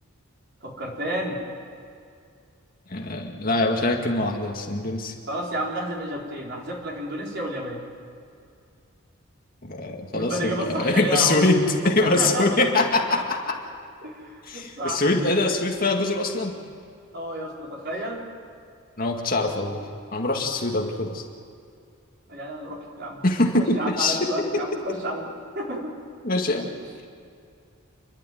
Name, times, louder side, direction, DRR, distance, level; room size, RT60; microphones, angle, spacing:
voice 1, 0.6-1.4 5.3-7.8 10.1-11.5 12.0-13.2 14.0-15.1 15.5-15.6 17.1-18.2 22.3-23.2 23.6-25.3 25.5-25.8, right 1 dB, 50° right, -2 dB, 4.4 m, -31 dB
voice 2, 2.9-5.1 9.6-13.6 14.5-16.5 19.0-19.8 20.1-21.2 23.2-24.3 26.2-26.7, left 2 dB, 40° left, 1 dB, 2.1 m, -23 dB
29.5 x 12.0 x 9.4 m, 2.4 s
head